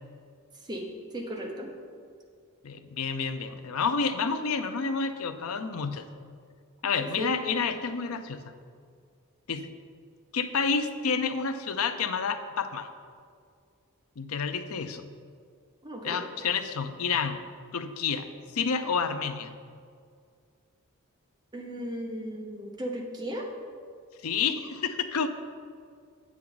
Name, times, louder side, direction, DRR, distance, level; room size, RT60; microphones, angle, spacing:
voice 1, 0.6-1.7 7.0-7.3 15.8-16.2 21.5-23.5, equal, 20° right, 0 dB, 1.0 m, -36 dB
voice 2, 2.6-6.1 6.8-8.4 9.5-9.7 10.3-12.9 14.2-15.1 16.0-17.4 17.7-18.3 18.5-19.5 24.2-25.3, left 5 dB, 70° left, 9 dB, 0.5 m, -29 dB
8.6 x 7.3 x 3.9 m, 2.2 s
head